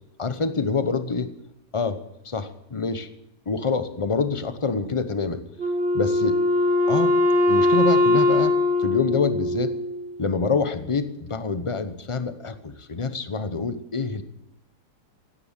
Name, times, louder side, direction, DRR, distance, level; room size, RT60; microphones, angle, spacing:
voice 1, 0.2-1.3 1.7-2.0 2.2-3.1 3.5-5.4 5.9-6.4 6.9-7.1 7.5-9.7 10.2-14.2, left 4 dB, 25° left, 10 dB, 0.7 m, -26 dB
Wind instrument woodwind instrument, 5.6-10.1, left 2 dB, 40° right, 2.3 m, -21 dB
16.0 x 10.5 x 7.4 m, 0.86 s
omnidirectional pair, 1.7 m